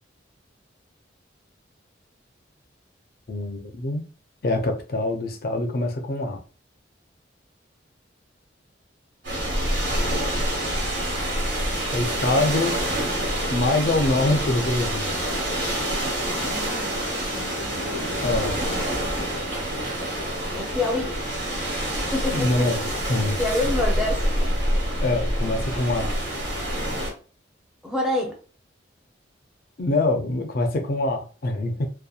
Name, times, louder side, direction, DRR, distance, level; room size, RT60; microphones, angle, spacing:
voice 1, 3.3-4.0 4.4-6.4 11.9-12.8 13.5-15.2 18.2-18.7 22.3-22.8 23.1-23.4 25.0-26.1 29.8-31.9, left 2 dB, 50° left, 0.4 m, -24 dB
sound 1, 9.2-27.1, right 1 dB, 80° right, 1.3 m, -26 dB
voice 2, 16.3-18.0 20.5-21.1 22.1-22.7 23.4-24.5 25.4-25.6 27.8-28.4, left 2 dB, 5° right, 0.6 m, -28 dB
2.7 x 2.2 x 2.3 m
head